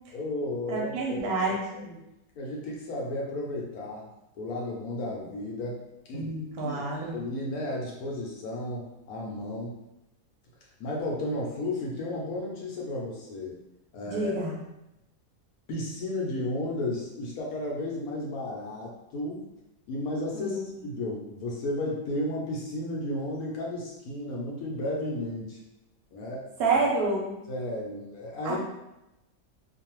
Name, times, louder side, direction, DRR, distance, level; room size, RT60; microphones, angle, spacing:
voice 1, 0.1-2.0 2.4-4.1 4.4-6.3 6.6-9.8 10.8-13.5 13.9-14.4 15.7-19.5 19.9-25.6 26.1-26.5 27.5-28.6, left 1 dB, 70° left, -3 dB, 1.0 m, -33 dB
voice 2, 0.7-1.6 6.1-7.2 14.0-14.5 20.3-20.6 26.6-27.3 28.4-28.6, right 3 dB, 70° right, -2 dB, 1.0 m, -28 dB
2.6 x 2.2 x 2.9 m, 0.90 s
omnidirectional pair, 1.8 m